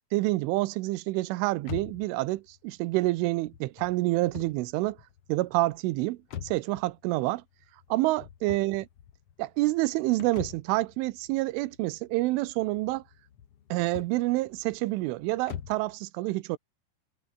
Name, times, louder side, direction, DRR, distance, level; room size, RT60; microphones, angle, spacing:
voice 1, 0.1-5.0 5.3-6.2 6.4-7.4 7.9-8.9 9.4-13.0 13.7-16.6, right 19 dB, 90° right, 3.3 m, -28 dB
sound 1, 1.6-15.9, left 9 dB, 85° left, 1.3 m, -45 dB
omnidirectional pair, 5.5 m